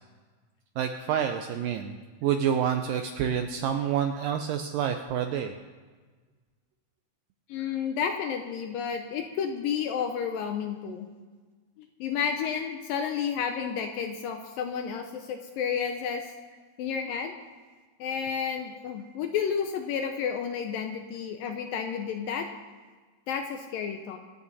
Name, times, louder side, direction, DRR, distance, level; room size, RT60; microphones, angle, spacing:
voice 1, 0.8-1.9 2.2-5.6, right 8 dB, 80° right, 6 dB, 2.0 m, -28 dB
voice 2, 7.5-11.1 11.8-16.3 16.8-17.3 18.0-22.5 23.3-24.2, left 7 dB, 80° left, 5 dB, 2.1 m, -31 dB
25.5 x 8.5 x 4.1 m, 1.4 s
omnidirectional pair, 4.6 m